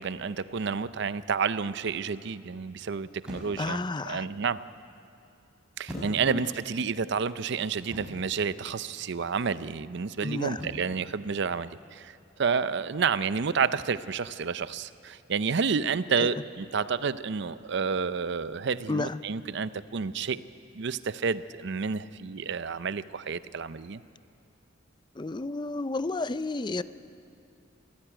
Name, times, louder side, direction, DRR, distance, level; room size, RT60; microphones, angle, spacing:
voice 1, 0.0-4.6 5.8-20.4 20.7-24.0, right 5 dB, 60° right, 15 dB, 0.6 m, -30 dB
sound 1, 3.2-3.8 5.9-6.6 7.9-8.4 10.6-11.0, equal, 5° right, 5.6 m, -41 dB
voice 2, 3.6-4.3 6.3-6.4 10.2-10.6 16.2-16.4 18.9-19.2 25.2-26.8, left 2 dB, 25° left, 14 dB, 0.5 m, -31 dB
24.5 x 15.0 x 8.9 m, 2.6 s
head